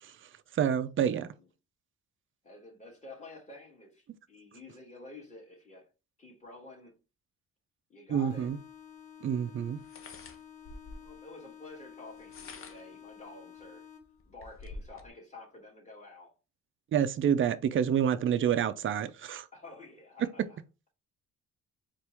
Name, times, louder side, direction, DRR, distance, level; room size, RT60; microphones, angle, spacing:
voice 1, 0.6-1.3 8.1-8.6 9.2-9.8 16.9-19.5, right 8 dB, 40° right, 0.5 m, -28 dB
voice 2, 1.1-1.5 2.4-5.9 6.2-7.0 7.9-8.5 11.0-13.9 14.2-16.3 19.5-20.6, left 2 dB, 25° left, 2.3 m, -50 dB
sound 1, 8.3-14.3, left 8 dB, 70° left, 1.4 m, -51 dB
sound 2, 8.5-8.6 9.8-11.2 12.1-13.0 13.6-13.7 14.0-15.1, left 3 dB, 45° left, 0.9 m, -47 dB
4.4 x 2.6 x 3.4 m
cardioid pair, 90°, 30 cm